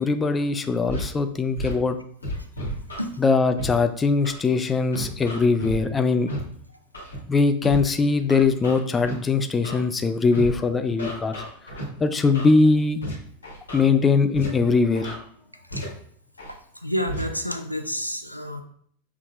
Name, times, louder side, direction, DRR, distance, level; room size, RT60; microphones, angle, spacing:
voice 1, 0.0-2.0 3.2-6.3 7.3-11.4 12.0-13.0 13.7-15.2, left 4 dB, 15° left, 8 dB, 0.3 m, -21 dB
Scratching (performance technique), 0.9-1.0 1.6-1.7 2.2-3.0 3.6-3.7 4.2-4.4 4.9-5.8 6.3-6.4 6.9-7.2 7.6-7.8 8.3-9.1 9.6-9.8 10.3-10.5 11.0-11.8 12.3-12.5 13.0-13.1 13.4-13.8 14.3-14.5 14.9-15.1 15.7-15.8 16.4-16.5 17.1-17.2, equal, 70° left, 1.4 m, -32 dB
voice 2, 16.8-18.6, equal, 90° left, 6 dB, 0.4 m, -29 dB
5.9 x 3.7 x 2.3 m, 0.63 s
figure-of-eight pair, 90°, 0 cm